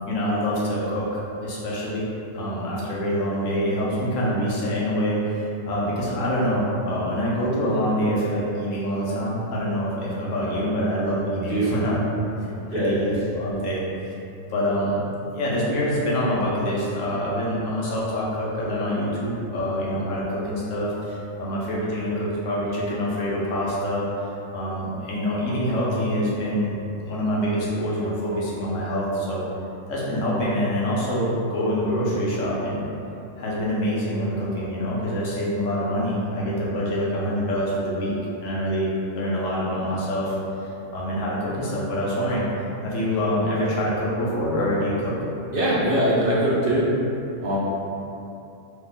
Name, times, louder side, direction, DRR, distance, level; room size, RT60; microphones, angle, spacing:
voice 1, 0.1-1.1 1.4-2.1 2.3-12.2 12.7-14.1 14.5-15.0 15.3-24.1 24.5-26.8 27.0-29.4 29.9-32.8 33.4-38.1 38.4-40.3 40.9-42.5 42.8-45.2, equal, 80° left, -6 dB, 1.1 m, -25 dB
voice 2, 12.7-13.1 45.5-46.9 47.4-47.6, right 1 dB, 55° right, -8 dB, 0.7 m, -22 dB
2.9 x 2.2 x 3.9 m, 2.8 s
omnidirectional pair, 1.3 m